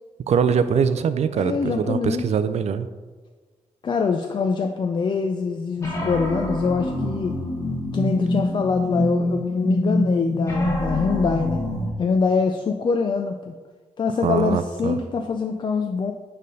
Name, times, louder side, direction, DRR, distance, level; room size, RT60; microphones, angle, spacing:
voice 1, 0.3-2.9 14.2-15.0, right 7 dB, 60° right, 12 dB, 0.4 m, -22 dB
voice 2, 1.3-2.2 3.8-7.4 7.9-11.6 12.0-13.5 14.0-16.1, left 5 dB, 40° left, 4 dB, 0.3 m, -24 dB
sound 1, 5.8-11.9, left 1 dB, 20° left, 1.3 m, -25 dB
6.7 x 3.3 x 5.2 m, 1.4 s
wide cardioid pair, 145°, 13 cm